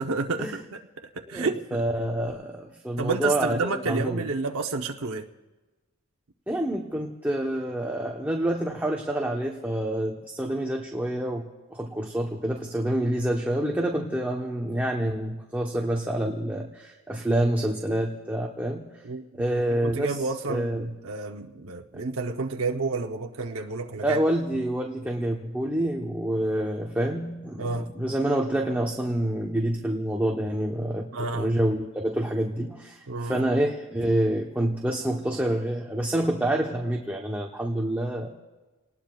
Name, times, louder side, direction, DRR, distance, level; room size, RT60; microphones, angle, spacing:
voice 1, 0.0-1.8 3.0-5.3 19.0-19.2 19.8-24.2 27.6-27.9 31.1-31.5 33.1-33.4, right 3 dB, 75° right, 2 dB, 0.8 m, -30 dB
voice 2, 1.3-4.2 6.5-18.9 19.3-20.9 21.9-22.0 24.0-31.1 31.3-38.3, right 1 dB, 10° right, 0 dB, 0.9 m, -27 dB
30.0 x 19.5 x 2.4 m, 1.2 s
head